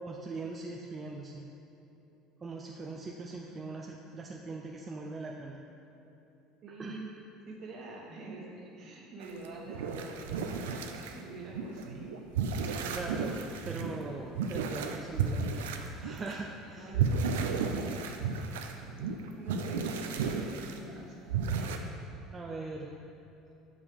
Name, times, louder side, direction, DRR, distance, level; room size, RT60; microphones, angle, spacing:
voice 1, 0.0-1.5 2.4-5.6 6.8-7.0 12.9-13.4 13.6-16.9 22.3-23.0, right 3 dB, 30° right, 0 dB, 0.5 m, -41 dB
voice 2, 6.6-7.1 7.5-10.9 11.1-12.1 16.6-17.6 18.9-21.8, right 2 dB, 55° right, -1 dB, 1.3 m, -46 dB
sound 1, 9.2-11.2 11.5-16.4 16.9-20.8 21.3-21.8, right 5 dB, 85° right, 0.4 m, -33 dB
5.3 x 4.9 x 5.2 m, 2.9 s
hypercardioid pair, 85°, 0 cm